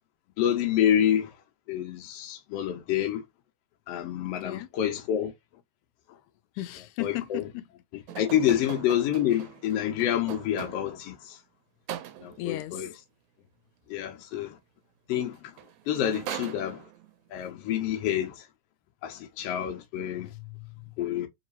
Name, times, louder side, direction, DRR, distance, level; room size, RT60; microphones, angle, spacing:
voice 1, 0.4-1.3 1.7-3.2 3.9-5.3 7.0-7.4 8.2-11.4 12.2-12.9 13.9-14.6 15.1-15.5 15.9-16.8 17.3-18.4 19.0-20.3 21.0-21.3, left 10 dB, 65° left, 1.7 m, -27 dB
voice 2, 6.6-7.7 12.4-12.9 20.2-20.9, left 15 dB, 90° left, 2.0 m, -36 dB
sound 1, 8.1-11.1 11.9-12.5 15.2-15.3 15.6-17.1, right 11 dB, 80° right, 1.9 m, -41 dB
4.7 x 2.8 x 2.7 m
omnidirectional pair, 3.4 m